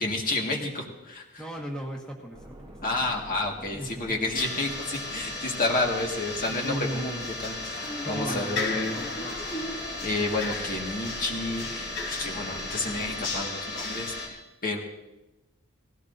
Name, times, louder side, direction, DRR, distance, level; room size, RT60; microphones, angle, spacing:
voice 1, 0.0-1.4 2.8-9.0 9.7-14.8, left 2 dB, 40° left, 0 dB, 1.8 m, -30 dB
voice 2, 1.4-2.5 3.7-3.9 6.3-7.3 8.0-9.4, equal, 5° left, -2 dB, 1.5 m, -36 dB
sound 1, 2.3-13.4, right 1 dB, 20° right, 1.2 m, -46 dB
sound 2, 4.4-14.3, left 2 dB, 60° left, 3.3 m, -34 dB
19.0 x 16.5 x 2.7 m, 1.0 s
head